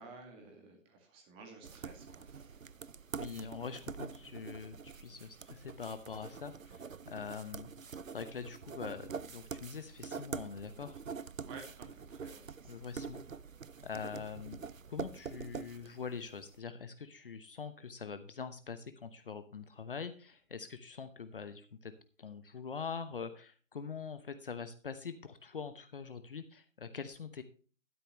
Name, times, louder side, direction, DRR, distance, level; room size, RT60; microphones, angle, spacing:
voice 1, 0.0-2.7 11.4-12.8, right 3 dB, 15° right, 2 dB, 2.1 m, -53 dB
sound 1, 1.6-16.5, right 6 dB, 80° right, 0.7 m, -45 dB
voice 2, 3.2-7.7 8.1-11.0 12.7-13.2 13.8-14.6 14.9-21.9 22.2-27.4, left 6 dB, 45° left, 11 dB, 0.9 m, -44 dB
12.5 x 10.0 x 3.1 m, 0.38 s
figure-of-eight pair, 140°, 39 cm